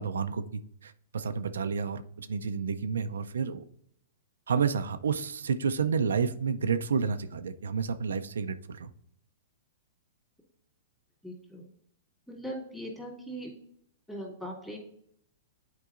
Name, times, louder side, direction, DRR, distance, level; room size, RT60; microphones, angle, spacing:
voice 1, 0.0-3.6 4.5-8.9, right 6 dB, 90° right, 10 dB, 0.4 m, -30 dB
voice 2, 11.2-11.7 12.3-13.5 14.1-14.8, equal, 5° left, -2 dB, 2.3 m, -40 dB
9.4 x 4.5 x 2.5 m, 0.70 s
hypercardioid pair, 140°, 0 cm